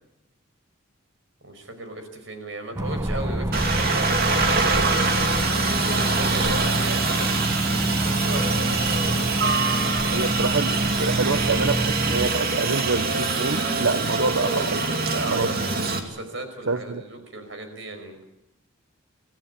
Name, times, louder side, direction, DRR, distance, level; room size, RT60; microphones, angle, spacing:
voice 1, 1.4-4.9 5.9-7.5 8.0-9.6 15.1-18.2, right 2 dB, 65° right, 7 dB, 5.4 m, -36 dB
sound 1, 2.7-12.3, right 1 dB, 15° right, 0.8 m, -27 dB
Aircraft, 3.5-16.0, right 3 dB, 50° right, 2.7 m, -24 dB
voice 2, 10.1-15.5 16.7-17.0, right 4 dB, 80° right, 12 dB, 0.9 m, -26 dB
26.0 x 16.5 x 8.4 m, 0.89 s
head